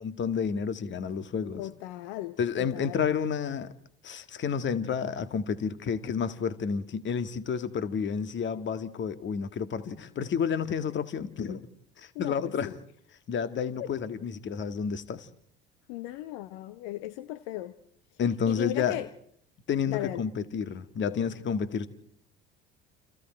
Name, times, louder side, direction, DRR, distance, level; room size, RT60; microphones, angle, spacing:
voice 1, 0.0-1.7 2.4-3.7 4.0-11.7 12.0-12.8 13.3-15.3 18.2-19.0 19.7-21.9, left 7 dB, 40° left, 1.9 m, -30 dB
voice 2, 1.6-2.4 2.7-3.0 12.1-12.4 12.6-12.7 13.8-13.9 15.9-17.7 18.5-19.1 19.9-20.2, left 14 dB, 60° left, 1.1 m, -36 dB
30.0 x 27.5 x 4.5 m
figure-of-eight pair, 65°, 30 cm